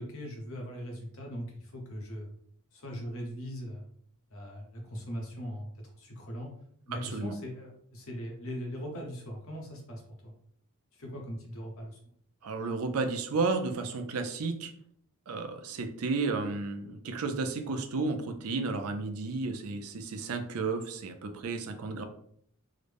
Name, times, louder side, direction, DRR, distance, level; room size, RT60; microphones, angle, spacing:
voice 1, 0.0-2.3 2.7-3.9 4.3-5.7 5.9-6.5 6.9-10.3 11.0-12.0, equal, 65° left, 1 dB, 0.9 m, -40 dB
voice 2, 7.0-7.3 12.4-14.7 15.3-22.0, right 3 dB, 70° right, 6 dB, 0.5 m, -32 dB
3.7 x 2.1 x 3.3 m, 0.65 s
head